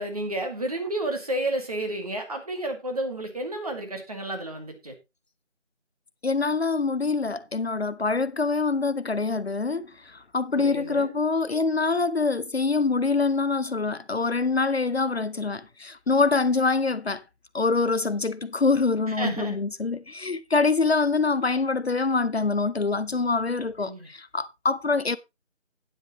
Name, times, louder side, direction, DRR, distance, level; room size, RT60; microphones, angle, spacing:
voice 1, 0.0-4.9 10.5-11.2 19.2-19.6 23.8-24.1, right 1 dB, 30° right, 2.0 m, -31 dB
voice 2, 6.2-17.2 17.5-25.2, left 4 dB, 60° left, 0.7 m, -25 dB
12.0 x 9.8 x 3.0 m
figure-of-eight pair, 170°, 36 cm